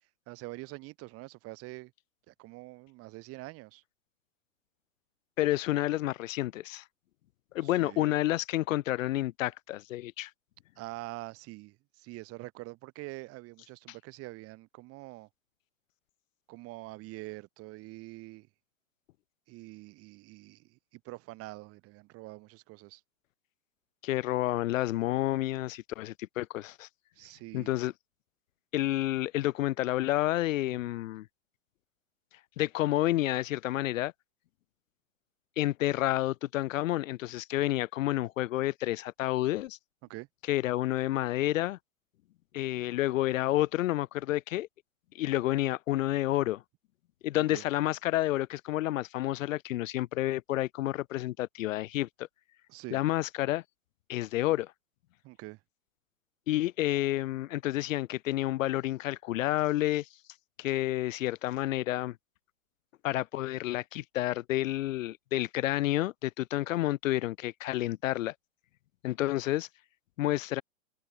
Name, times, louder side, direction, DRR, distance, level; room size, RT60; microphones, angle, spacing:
voice 1, 0.3-1.9 2.3-3.8 7.6-8.1 10.8-15.3 16.5-18.5 19.5-23.0 27.2-27.7 30.7-30.9 40.1-40.3 47.5-47.6 52.7-53.0 55.2-55.6, right 21 dB, 35° right, 2.6 m, -45 dB
voice 2, 5.4-6.8 7.5-10.3 24.0-26.9 27.5-27.9 28.7-31.3 32.6-34.1 35.6-39.8 40.5-41.8 42.5-44.7 45.1-46.6 47.2-52.3 52.9-53.6 54.1-54.7 56.5-60.1 60.6-62.2 63.0-68.3 69.0-69.7 70.2-70.6, left 15 dB, 70° left, 0.5 m, -30 dB
hypercardioid pair, 125°, 41 cm